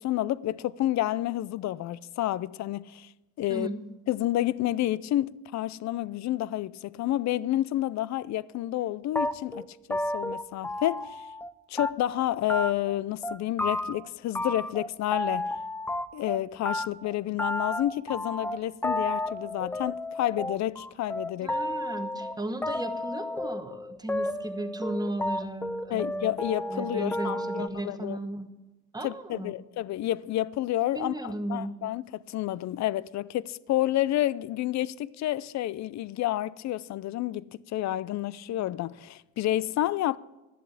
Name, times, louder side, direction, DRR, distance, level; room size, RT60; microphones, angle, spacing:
voice 1, 0.0-3.1 3.4-3.7 4.1-9.6 9.9-11.2 11.7-15.5 16.1-21.6 25.9-28.2 29.0-40.2, left 14 dB, 65° left, 0.5 m, -30 dB
voice 2, 3.5-3.8 21.4-26.4 26.7-28.5 28.9-29.6 30.9-31.8, right 1 dB, 15° right, 1.1 m, -35 dB
sound 1, 9.1-11.5 11.8-12.2 12.5-13.0 13.2-14.1 14.3-16.4 16.6-27.7, left 1 dB, 5° left, 0.3 m, -32 dB
11.0 x 7.5 x 8.3 m
cardioid pair, 90°, 30 cm